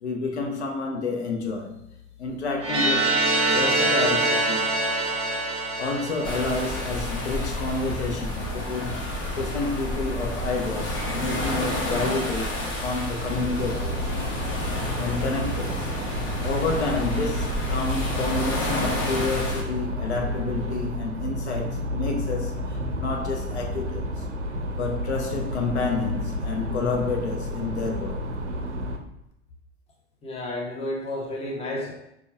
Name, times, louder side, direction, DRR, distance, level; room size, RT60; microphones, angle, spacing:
voice 1, 0.0-1.8 2.2-4.7 5.8-9.1 9.4-14.0 15.0-24.2 24.8-28.4, left 3 dB, 70° left, 1 dB, 0.7 m, -29 dB
sound 1, 2.6-7.5, right 2 dB, 20° right, 0.7 m, -25 dB
sound 2, 6.2-19.6, left 1 dB, 55° left, 1.2 m, -30 dB
sound 3, 13.2-29.0, left 1 dB, 90° right, 0.5 m, -31 dB
voice 2, 30.2-31.9, left 1 dB, 20° left, -1 dB, 0.8 m, -31 dB
5.1 x 2.4 x 2.3 m, 0.80 s
figure-of-eight pair, 80°, 34 cm